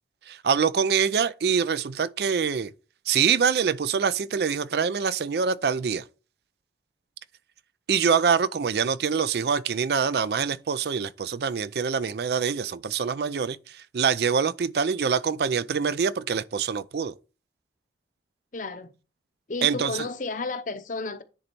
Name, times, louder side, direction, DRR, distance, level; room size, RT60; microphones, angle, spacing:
voice 1, 0.3-2.7 3.1-6.0 7.9-17.1 19.6-19.9, right 6 dB, 65° right, 0.4 m, -25 dB
voice 2, 18.5-18.9 19.5-21.2, left 3 dB, 45° left, 0.7 m, -32 dB
10.0 x 4.0 x 4.4 m
head